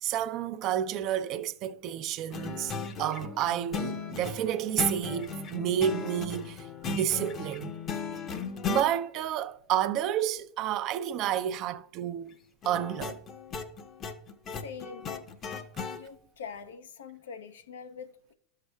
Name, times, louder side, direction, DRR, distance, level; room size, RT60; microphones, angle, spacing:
voice 1, 0.0-2.7 3.0-7.7 8.7-12.4 12.6-13.2, right 10 dB, 50° right, 0.5 m, -30 dB
sound 1, 2.3-8.9 12.6-16.0, left 5 dB, 35° left, 0.7 m, -36 dB
voice 2, 14.5-15.2 15.9-18.3, left 6 dB, 75° left, 0.5 m, -44 dB
12.5 x 6.6 x 2.3 m
hypercardioid pair, 90°, 0 cm